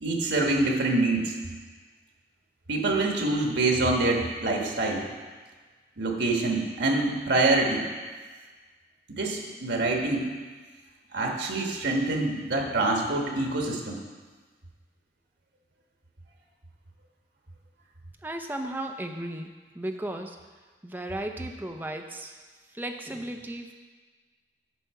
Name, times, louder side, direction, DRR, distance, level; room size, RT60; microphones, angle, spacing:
voice 1, 0.0-1.3 2.7-5.1 6.0-7.8 9.2-10.2 11.1-14.0, right 2 dB, 90° right, 1 dB, 1.3 m, -25 dB
voice 2, 18.2-20.4 20.8-22.4 22.7-23.7, right 1 dB, 10° right, 4 dB, 0.5 m, -35 dB
9.3 x 5.6 x 4.7 m, 1.4 s
head